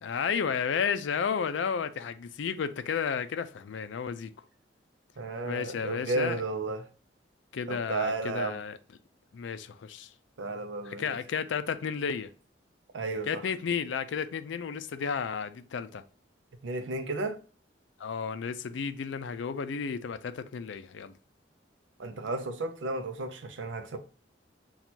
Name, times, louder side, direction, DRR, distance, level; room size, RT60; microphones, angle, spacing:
voice 1, 0.0-4.3 5.4-6.4 7.5-8.8 9.3-10.1 10.8-12.3 13.2-16.0 18.0-21.1, left 6 dB, 85° left, 0.4 m, -32 dB
voice 2, 5.2-6.9 7.7-8.6 10.4-11.1 12.9-13.4 16.6-17.4 22.0-24.0, right 3 dB, 90° right, 0.5 m, -33 dB
6.0 x 2.3 x 2.7 m
head